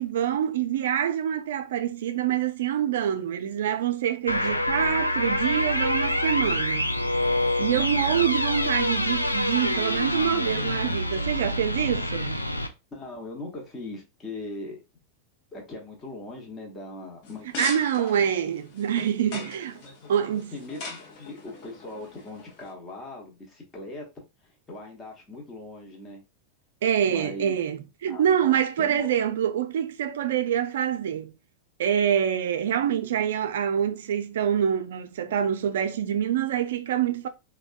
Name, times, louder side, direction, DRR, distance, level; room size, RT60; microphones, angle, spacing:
voice 1, 0.0-6.9 7.6-12.5 17.6-19.7 20.1-20.5 26.8-31.3 31.8-37.3, right 9 dB, 60° right, 0.3 m, -26 dB
sound 1, 4.3-12.7, left 1 dB, 85° left, 0.3 m, -26 dB
voice 2, 7.8-8.3 9.7-10.2 12.9-14.8 15.5-17.5 17.9-18.3 19.3-19.5 19.8-24.1 24.4-26.2 27.1-27.6 28.1-29.1, left 2 dB, 20° left, 1.0 m, -40 dB
sound 2, 17.2-22.7, left 3 dB, 45° left, 0.8 m, -41 dB
3.4 x 2.2 x 2.4 m
figure-of-eight pair, 90°, 0 cm